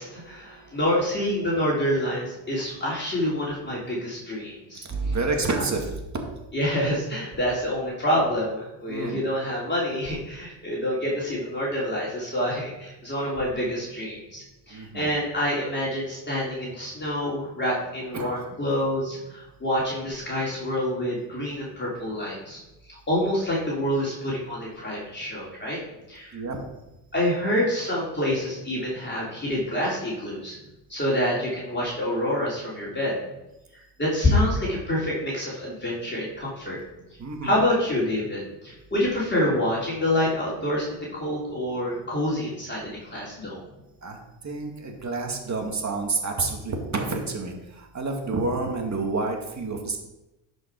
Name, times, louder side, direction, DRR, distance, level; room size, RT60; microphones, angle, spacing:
voice 1, 0.0-5.1 6.5-22.6 22.9-25.8 26.1-26.4 27.1-30.6 30.9-33.2 34.0-36.8 37.4-43.6, left 1 dB, 20° left, -6 dB, 3.5 m, -27 dB
voice 2, 4.9-6.0 8.9-9.2 14.7-15.1 18.1-18.5 26.3-26.6 37.2-37.6 44.0-44.2 44.4-47.5 47.9-50.0, right 3 dB, 35° right, 2 dB, 2.2 m, -28 dB
11.0 x 5.5 x 4.7 m, 0.96 s
supercardioid pair, 80°, 50 cm